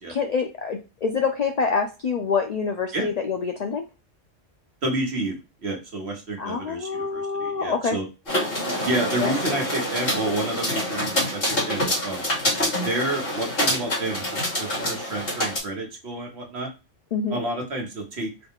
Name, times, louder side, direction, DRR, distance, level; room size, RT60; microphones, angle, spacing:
voice 1, 0.1-3.8 6.4-8.0 9.2-9.3 17.1-17.4, left 5 dB, 90° left, 4 dB, 0.3 m, -26 dB
voice 2, 4.8-8.0 8.8-11.4 11.7-12.2 12.8-16.7 17.3-18.3, right 1 dB, 60° right, 2 dB, 1.3 m, -29 dB
sound 1, 8.3-15.6, left 1 dB, 50° left, 2.1 m, -26 dB
3.9 x 2.3 x 3.6 m, 0.29 s
omnidirectional pair, 1.3 m